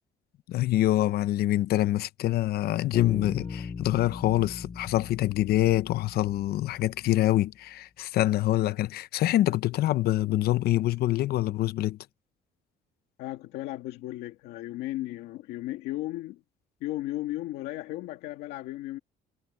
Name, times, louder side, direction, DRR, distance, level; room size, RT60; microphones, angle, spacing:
voice 1, 0.5-12.0, left 15 dB, 65° left, 0.7 m, -25 dB
Bass guitar, 2.9-7.0, left 5 dB, 30° left, 5.6 m, -38 dB
voice 2, 13.2-16.4 16.8-19.0, left 16 dB, 90° left, 2.1 m, -35 dB
cardioid pair, 110°, 17 cm